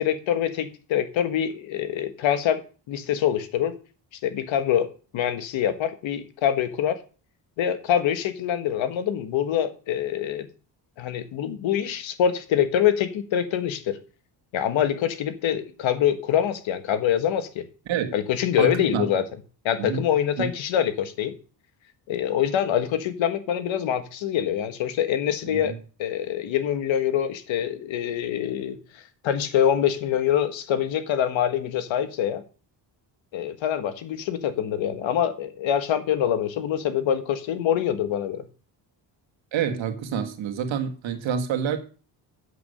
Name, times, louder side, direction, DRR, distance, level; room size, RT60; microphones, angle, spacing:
voice 1, 0.0-2.6 2.9-3.8 4.2-7.0 7.6-10.5 11.0-14.0 14.5-17.6 18.1-19.2 19.6-21.3 22.1-28.8 29.2-32.4 33.3-38.4, left 9 dB, 85° left, 1.5 m, -25 dB
voice 2, 18.6-19.1 19.8-20.0 20.4-20.5 25.4-25.8 39.5-41.8, right 7 dB, 80° right, 1.9 m, -27 dB
8.2 x 8.1 x 6.7 m
cardioid pair, 125°, 45 cm